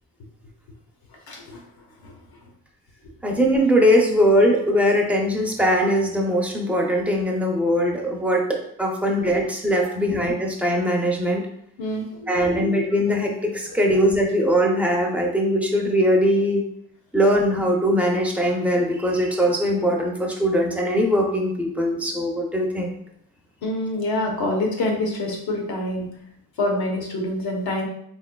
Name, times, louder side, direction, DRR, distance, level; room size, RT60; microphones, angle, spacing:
voice 1, 1.3-1.6 2.0-2.1 9.2-9.3 9.8-10.2 11.8-12.7 23.6-26.1 26.6-27.9, left 1 dB, 75° left, 1 dB, 1.0 m, -26 dB
voice 2, 3.2-11.4 12.3-16.6 17.1-23.0, equal, 5° right, -1 dB, 0.5 m, -21 dB
4.3 x 3.2 x 2.2 m, 0.72 s
wide cardioid pair, 175°, 37 cm